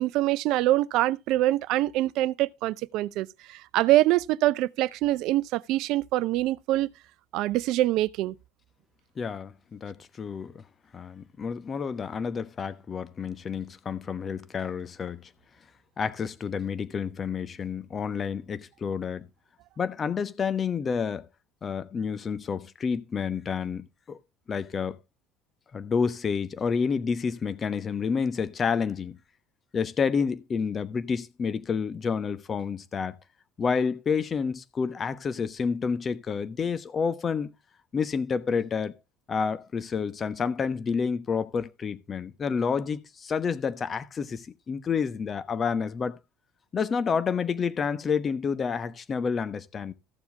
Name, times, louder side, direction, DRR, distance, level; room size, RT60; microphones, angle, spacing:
voice 1, 0.0-6.9 7.3-8.3, right 16 dB, 60° right, 0.5 m, -24 dB
voice 2, 9.2-10.6 10.9-15.3 16.0-19.3 19.8-21.3 21.6-24.2 24.5-25.0 25.7-29.2 29.7-33.2 33.6-37.5 37.9-39.0 39.3-46.2 46.7-49.9, left 6 dB, 35° left, 1.1 m, -29 dB
14.0 x 7.2 x 3.4 m
hypercardioid pair, 65°, 0 cm